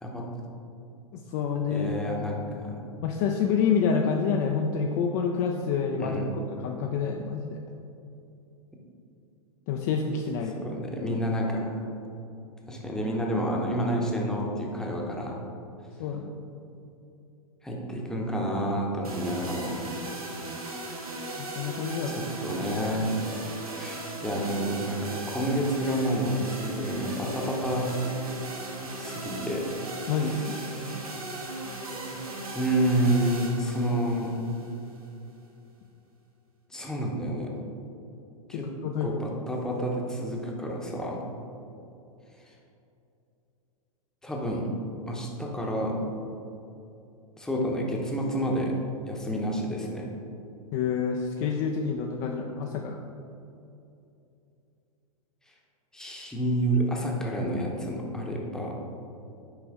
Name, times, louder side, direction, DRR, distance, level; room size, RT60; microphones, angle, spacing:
voice 1, 1.1-1.9 3.0-7.6 9.7-10.7 16.0-16.4 21.4-22.3 30.1-30.6 38.5-39.1 50.7-53.0, left 6 dB, 35° left, 2 dB, 0.4 m, -28 dB
voice 2, 1.7-2.8 6.0-6.3 10.6-11.9 12.7-15.4 17.6-19.9 22.1-23.2 23.7-27.9 29.0-29.7 30.2-31.1 32.5-34.3 36.7-37.5 38.5-38.7 39.0-41.2 44.2-44.7 45.1-46.0 47.4-48.7 49.1-50.1 55.9-58.7, right 1 dB, 5° left, -1 dB, 0.8 m, -29 dB
sound 1, 19.0-35.1, right 2 dB, 75° right, 1.5 m, -37 dB
6.3 x 4.9 x 3.6 m, 2.7 s
figure-of-eight pair, 100°, 19 cm